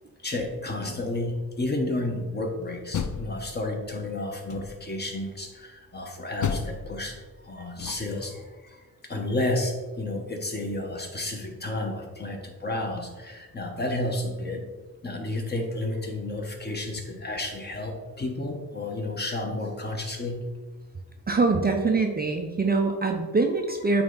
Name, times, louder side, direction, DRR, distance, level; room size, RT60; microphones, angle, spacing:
voice 1, 0.2-7.2 7.4-8.4 9.1-14.6 15.0-20.4, left 2 dB, 25° left, 2 dB, 1.2 m, -31 dB
Door, 2.7-3.9 4.5-5.1 6.4-8.3, left 7 dB, 55° left, 0.6 m, -33 dB
voice 2, 21.3-24.0, right 3 dB, 25° right, 3 dB, 0.5 m, -24 dB
8.7 x 3.4 x 4.0 m, 1.3 s
cardioid pair, 95°, 36 cm